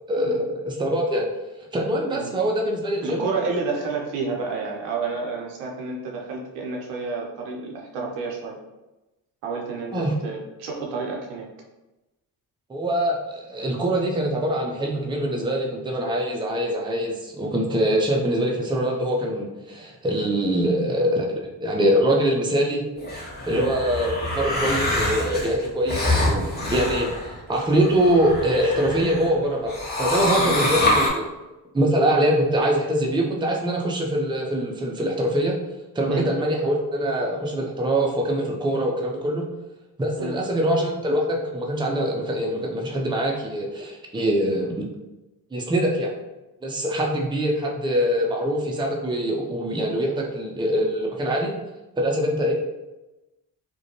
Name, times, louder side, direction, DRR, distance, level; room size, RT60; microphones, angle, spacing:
voice 1, 0.1-1.3 1.7-3.3 9.9-10.1 12.7-22.8 23.5-27.1 27.5-31.2 31.7-35.6 35.9-39.5 40.0-44.9 45.5-46.1 46.6-51.5 52.0-52.5, right 1 dB, 10° right, -1 dB, 0.5 m, -23 dB
voice 2, 3.0-8.6 9.4-11.5 23.5-23.7 30.4-30.6 36.1-36.3 40.2-40.4, right 4 dB, 80° right, -1 dB, 0.7 m, -30 dB
sound 1, 23.0-29.3 29.7-31.1, left 1 dB, 20° left, 1.0 m, -25 dB
2.5 x 2.2 x 2.8 m, 1.0 s
hypercardioid pair, 40°, 50 cm